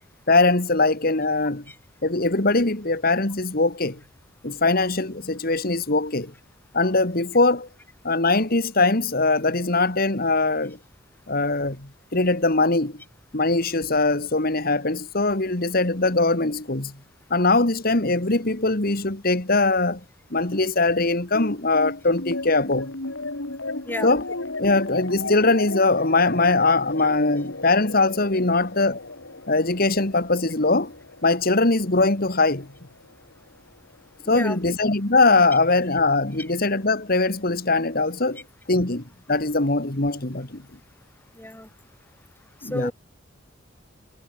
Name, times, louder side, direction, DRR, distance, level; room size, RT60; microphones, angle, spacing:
voice 1, 0.3-1.6 2.0-4.0 4.4-6.3 6.7-7.7 8.0-10.8 11.3-13.0 13.3-16.9 17.3-20.0 20.3-22.9 24.0-24.2 24.6-29.0 29.5-30.9 31.2-32.7 34.3-38.4 38.7-40.6 42.6-42.9, left 3 dB, 50° left, 2.3 m, -21 dB
sound 1, 21.3-34.0, left 2 dB, 75° left, 2.9 m, -35 dB
voice 2, 34.3-34.6 41.4-41.7 42.7-42.9, left 1 dB, 10° left, 3.3 m, -31 dB
head